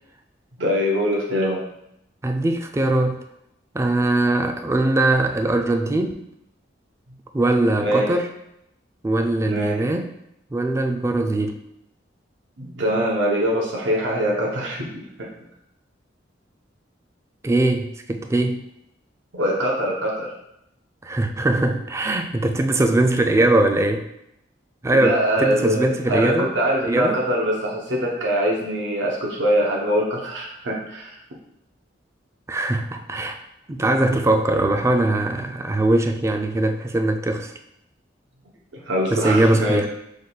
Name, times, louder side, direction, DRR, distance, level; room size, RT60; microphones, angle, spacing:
voice 1, 0.6-1.6 7.8-8.1 9.5-9.8 12.6-15.3 19.3-20.3 24.9-31.2 38.7-39.8, equal, 75° right, -3 dB, 0.8 m, -23 dB
voice 2, 2.2-3.2 3.7-6.2 7.3-8.3 9.0-10.1 10.5-11.6 17.4-18.6 21.0-24.1 24.8-26.5 26.8-27.2 32.5-33.4 33.7-37.5 39.1-39.9, right 2 dB, 15° right, 5 dB, 0.3 m, -21 dB
5.0 x 2.3 x 3.9 m, 0.81 s
head